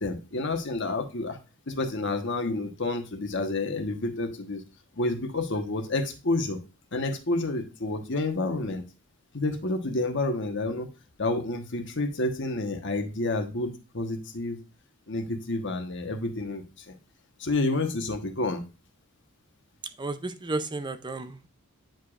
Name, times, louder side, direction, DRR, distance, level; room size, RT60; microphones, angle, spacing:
voice 1, 0.0-1.4 1.7-4.6 5.0-6.6 6.9-8.8 9.3-10.9 11.2-14.6 15.1-17.0 17.4-18.6, left 2 dB, 55° left, 6 dB, 1.2 m, -29 dB
voice 2, 20.0-21.5, right 2 dB, 20° right, 10 dB, 0.5 m, -33 dB
9.0 x 5.0 x 2.4 m, 0.30 s
head